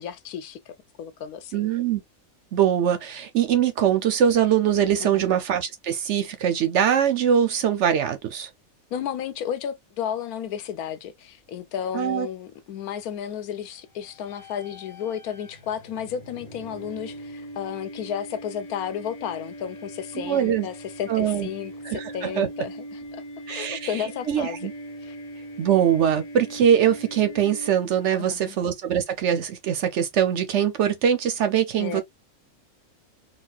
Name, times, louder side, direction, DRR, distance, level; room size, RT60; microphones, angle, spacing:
voice 1, 0.0-1.7 5.0-5.3 8.9-24.6 25.0-25.2 28.2-28.6 31.8-32.0, left 9 dB, 85° left, 1.2 m, -33 dB
voice 2, 1.5-2.0 2.5-8.5 11.9-12.3 20.2-20.7 21.1-21.5 21.8-22.5 23.5-23.9 24.3-24.7 25.6-32.0, right 9 dB, 65° right, 0.8 m, -22 dB
sound 1, 14.1-28.1, right 1 dB, 30° left, 1.5 m, -41 dB
4.1 x 2.2 x 2.3 m
omnidirectional pair, 1.5 m